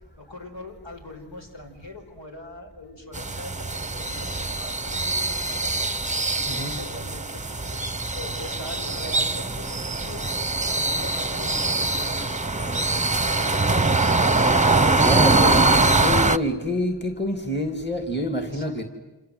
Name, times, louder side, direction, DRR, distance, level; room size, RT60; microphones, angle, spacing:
voice 1, 0.2-5.9 6.5-7.8 8.1-10.3 10.6-12.3 12.5-13.6 18.4-18.8, left 1 dB, 85° left, 2 dB, 5.2 m, -41 dB
sound 1, 3.1-16.4, right 3 dB, 15° right, 0.8 m, -23 dB
voice 2, 6.5-6.8 15.0-18.8, left 1 dB, 25° left, 5 dB, 2.6 m, -27 dB
28.0 x 27.0 x 7.9 m, 1.2 s
wide cardioid pair, 40°, 43 cm